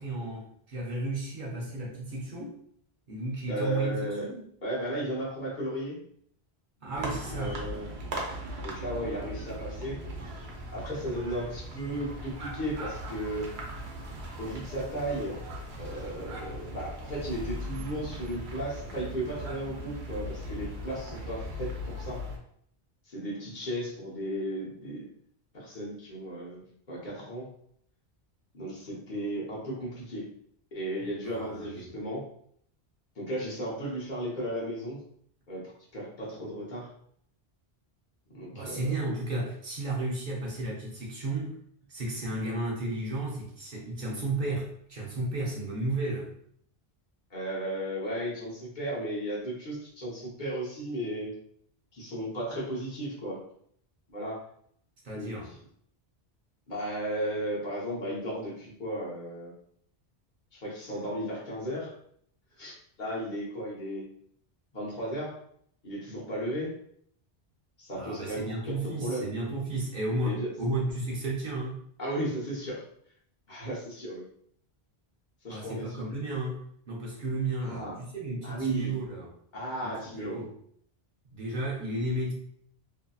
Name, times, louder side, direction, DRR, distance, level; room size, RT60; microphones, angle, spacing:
voice 1, 0.0-2.6 3.1-4.4 6.8-7.6 31.3-31.9 38.5-41.5 41.9-46.3 55.0-55.5 68.0-71.8 75.5-79.3 79.8-79.9 80.3-80.5 81.3-82.3, right 2 dB, 55° right, -3 dB, 0.8 m, -33 dB
voice 2, 3.5-4.3 4.6-6.0 7.0-7.9 8.6-10.0 10.7-13.5 14.4-15.4 15.8-22.2 23.1-25.1 25.5-27.5 28.5-30.3 30.7-32.2 33.2-35.0 35.5-35.6 35.9-36.9 38.3-39.0 47.3-51.4 51.9-53.4 54.1-54.4 55.1-55.3 56.7-59.5 60.5-61.9 62.6-64.0 64.7-65.3 65.8-66.7 67.8-69.3 70.2-70.5 72.0-72.8 73.5-74.2 75.4-76.0 77.6-78.0 78.4-78.9 79.5-80.4, right 1 dB, 50° left, -6 dB, 1.0 m, -35 dB
sound 1, 6.9-22.4, equal, 85° right, 0.9 m, -39 dB
2.7 x 2.6 x 2.3 m, 0.66 s
omnidirectional pair, 1.1 m